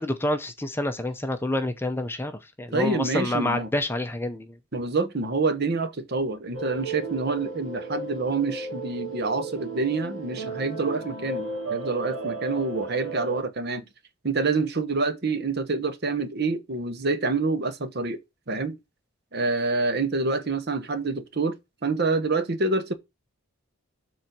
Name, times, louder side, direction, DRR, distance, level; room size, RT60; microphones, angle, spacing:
voice 1, 0.0-4.6, left 1 dB, 10° left, 0.6 m, -28 dB
voice 2, 2.7-3.7 4.7-13.8 14.2-18.2 18.5-18.8 19.3-21.6 21.8-22.9, right 3 dB, 45° right, 0.9 m, -27 dB
sound 1, 6.5-13.4, right 3 dB, 65° right, 2.1 m, -34 dB
7.4 x 4.0 x 6.0 m
head